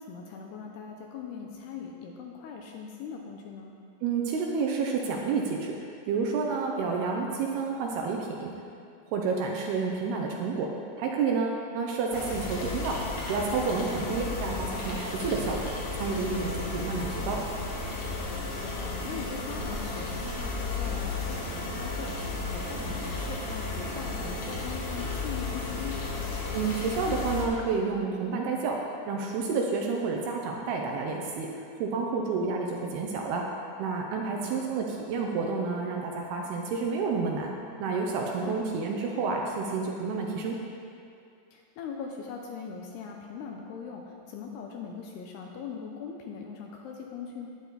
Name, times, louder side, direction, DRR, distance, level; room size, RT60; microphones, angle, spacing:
voice 1, 0.0-3.7 14.0-14.4 18.6-26.0 34.2-34.7 38.4-38.7 41.5-47.5, left 6 dB, 80° left, 1 dB, 2.5 m, -40 dB
voice 2, 4.0-5.8 6.1-8.5 9.1-10.7 11.0-13.0 13.2-17.4 26.5-33.5 33.8-37.5 37.8-40.6, right 4 dB, 75° right, 0 dB, 2.5 m, -30 dB
sound 1, 12.1-27.4, left 3 dB, 60° left, 1.9 m, -34 dB
11.5 x 9.8 x 4.0 m, 2.5 s
omnidirectional pair, 5.1 m